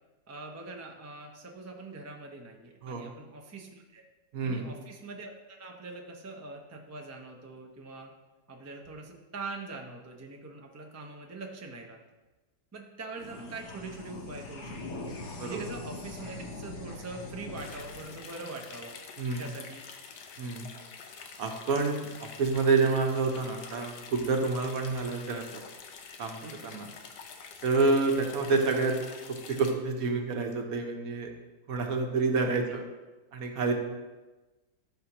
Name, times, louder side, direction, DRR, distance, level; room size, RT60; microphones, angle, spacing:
voice 1, 0.3-4.0 4.4-8.1 8.5-12.0 12.7-15.1 15.4-18.9 19.4-19.8 32.4-32.6, right 3 dB, 20° right, 1 dB, 0.4 m, -43 dB
voice 2, 4.3-4.7 15.4-15.6 19.2-19.4 20.4-20.7 21.4-25.6 26.2-26.9 27.6-29.0 29.5-31.3 31.7-32.8 33.3-33.7, right 3 dB, 65° right, 3 dB, 1.3 m, -28 dB
sound 1, 13.1-19.9, left 2 dB, 50° left, 1.2 m, -43 dB
sound 2, 17.6-29.7, left 6 dB, 90° left, 1.4 m, -47 dB
13.0 x 5.7 x 3.0 m, 1.2 s
omnidirectional pair, 1.8 m